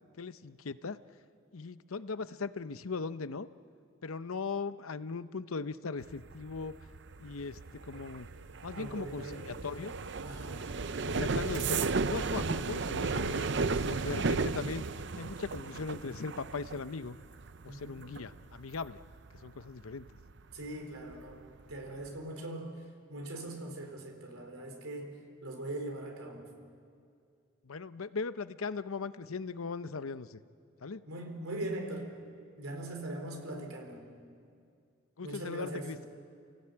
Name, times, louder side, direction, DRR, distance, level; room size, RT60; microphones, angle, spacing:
voice 1, 0.2-1.0 1.5-3.5 4.0-6.7 7.2-8.3 8.6-9.9 11.0-14.8 15.1-17.2 17.6-19.0 19.4-20.1 27.6-30.4 30.8-31.0 35.2-36.1, left 4 dB, 85° left, 13 dB, 0.8 m, -39 dB
sound 1, 6.0-20.7 21.0-21.4 21.7-22.1, right 4 dB, 55° right, 0.6 m, -35 dB
voice 2, 8.7-9.5 10.2-10.6 11.0-11.3 17.6-18.1 20.5-22.8 23.1-26.5 31.1-32.1 32.6-34.1 35.2-35.9, right 1 dB, 90° right, 3 dB, 4.4 m, -41 dB
29.5 x 18.0 x 8.8 m, 2.3 s
head